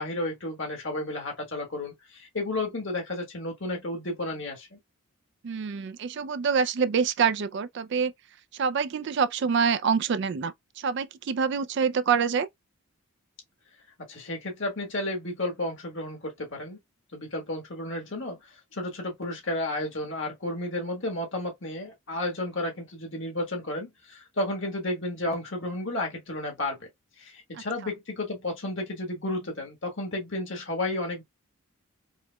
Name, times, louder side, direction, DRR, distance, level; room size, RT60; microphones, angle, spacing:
voice 1, 0.0-4.8 14.1-16.8 17.1-18.4 18.7-26.9 27.2-31.2, left 1 dB, 55° left, 1.4 m, -32 dB
voice 2, 5.4-8.1 8.5-12.5 27.5-27.6, right 6 dB, 55° right, 0.3 m, -26 dB
4.7 x 2.1 x 2.2 m
head